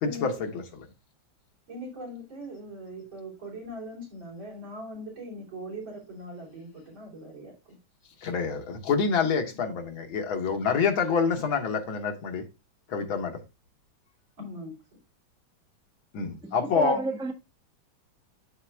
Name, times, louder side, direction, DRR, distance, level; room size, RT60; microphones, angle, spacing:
voice 1, 0.0-0.5 8.2-12.4 12.9-13.4 16.1-17.0, left 5 dB, 80° left, 2.0 m, -27 dB
voice 2, 1.7-7.8 14.4-14.7, equal, 75° right, 4.2 m, -40 dB
voice 3, 16.4-17.3, right 3 dB, 5° right, 0.8 m, -31 dB
12.5 x 4.2 x 2.3 m
omnidirectional pair, 2.2 m